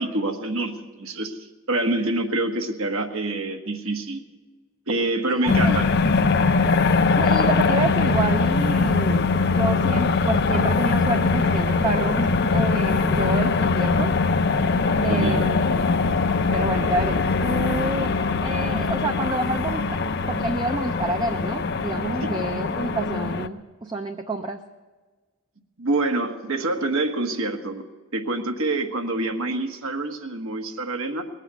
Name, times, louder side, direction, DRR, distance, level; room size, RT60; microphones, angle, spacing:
voice 1, 0.0-1.4 1.7-4.2 4.9-5.9 15.1-15.5 25.8-27.9 28.1-31.2, right 2 dB, 70° right, 5 dB, 1.4 m, -26 dB
voice 2, 5.4-5.8 7.1-14.1 15.0-15.9 16.5-19.9 20.3-24.6, right 2 dB, 20° right, 5 dB, 0.5 m, -29 dB
sound 1, 5.5-23.5, left 4 dB, 50° left, 0.6 m, -22 dB
20.0 x 8.3 x 8.0 m, 1.3 s
head